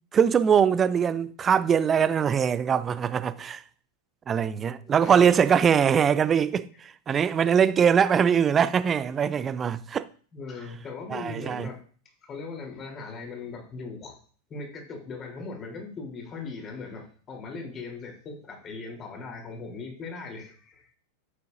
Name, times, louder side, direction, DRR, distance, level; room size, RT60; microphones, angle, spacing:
voice 1, 0.1-3.6 4.3-6.7 7.1-10.1 11.1-11.7, right 7 dB, 20° right, 0.5 m, -22 dB
voice 2, 4.8-5.6 10.3-11.8 12.2-14.2 14.5-20.9, left 4 dB, 25° left, 3.5 m, -39 dB
13.0 x 8.4 x 2.6 m
figure-of-eight pair, 90°, 0 cm